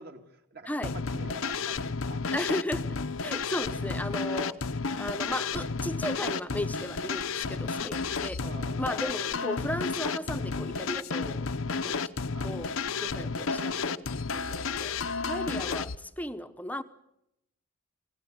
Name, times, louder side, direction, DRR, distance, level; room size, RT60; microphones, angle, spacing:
voice 1, 0.0-2.3 7.9-8.8 11.7-12.0 12.3-12.5 13.6-13.9, right 2 dB, 45° right, 5 dB, 2.4 m, -47 dB
sound 1, 0.8-16.0, left 4 dB, 65° left, 0.8 m, -32 dB
voice 2, 2.3-2.9 3.2-4.6 5.0-8.4 8.8-11.5 11.8-12.1 12.4-13.8 14.3-15.0 15.2-16.8, left 1 dB, 5° left, 10 dB, 0.9 m, -35 dB
27.5 x 17.0 x 9.4 m, 0.84 s
head